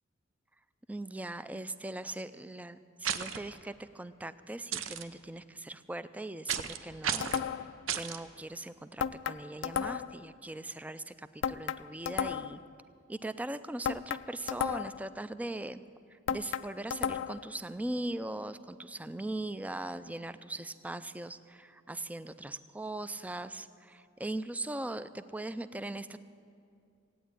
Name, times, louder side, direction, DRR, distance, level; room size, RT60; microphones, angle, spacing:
voice 1, 0.9-7.3 7.9-12.6 13.1-15.8 16.3-26.2, right 1 dB, 10° right, 13 dB, 0.4 m, -40 dB
sound 1, 3.0-3.4 4.7-5.0 6.5-6.8 7.0-7.4 7.9-8.2, right 8 dB, 85° right, 0.7 m, -33 dB
sound 2, 7.2-7.8 9.0-10.2 11.4-12.6 13.8-15.1 16.3-17.5, left 8 dB, 70° left, 0.4 m, -34 dB
16.0 x 9.2 x 8.8 m, 2.5 s
head